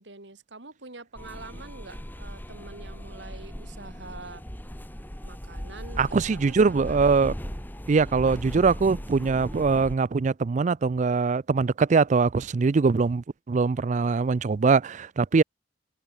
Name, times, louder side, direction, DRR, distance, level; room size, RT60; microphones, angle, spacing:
voice 1, 0.0-4.4 5.2-7.0, right 3 dB, 70° right, 3.0 m, -45 dB
sound 1, 1.2-10.0, equal, 10° left, 2.4 m, -38 dB
voice 2, 6.0-7.4 7.9-15.4, right 4 dB, 40° right, 0.4 m, -22 dB
head